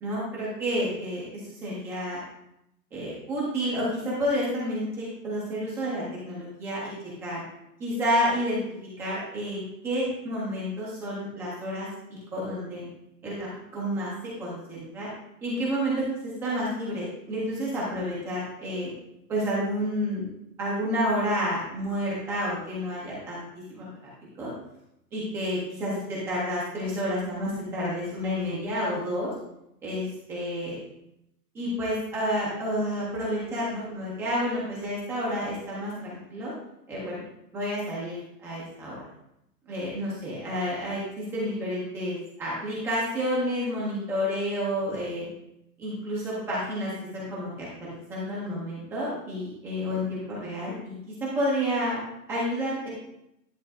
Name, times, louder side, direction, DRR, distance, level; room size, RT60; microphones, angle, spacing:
voice 1, 0.0-2.2 2.9-6.9 7.2-7.4 7.8-8.6 9.0-12.9 13.2-14.1 14.4-15.1 15.4-18.9 19.3-20.3 20.6-23.9 24.4-24.5 25.1-29.3 29.8-30.8 31.5-36.5 36.9-37.2 37.5-39.0 39.7-45.3 45.8-52.0 52.3-52.9, equal, 5° right, -6 dB, 0.5 m, -30 dB
10.5 x 8.5 x 2.4 m, 0.82 s
supercardioid pair, 170°, 48 cm